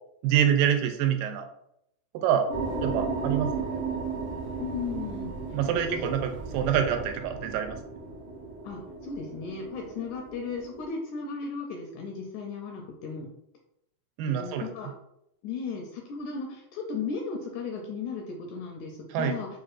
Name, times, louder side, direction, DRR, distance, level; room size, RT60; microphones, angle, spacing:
voice 1, 0.2-1.5 2.1-2.5 2.8-3.8 5.5-7.8 14.2-14.6 19.1-19.4, right 9 dB, 85° right, 5 dB, 2.2 m, -26 dB
sound 1, 2.5-10.9, right 4 dB, 70° right, 1.2 m, -35 dB
voice 2, 4.6-5.4 5.9-6.3 6.6-6.8 8.6-13.3 14.3-14.9 15.4-19.5, left 5 dB, 80° left, 1 dB, 1.7 m, -36 dB
6.1 x 2.4 x 2.4 m, 0.77 s
omnidirectional pair, 3.8 m